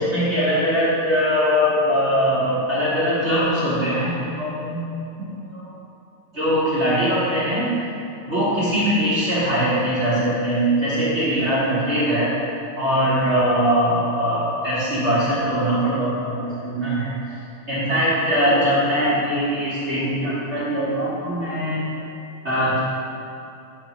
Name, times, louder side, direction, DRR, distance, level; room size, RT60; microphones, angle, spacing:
voice 1, 0.0-4.8 5.2-5.7 6.3-7.7 8.3-12.3 12.8-17.4 17.7-21.8 22.4-22.8, equal, 40° right, -11 dB, 1.0 m, -21 dB
8.2 x 3.5 x 5.9 m, 2.7 s
omnidirectional pair, 3.3 m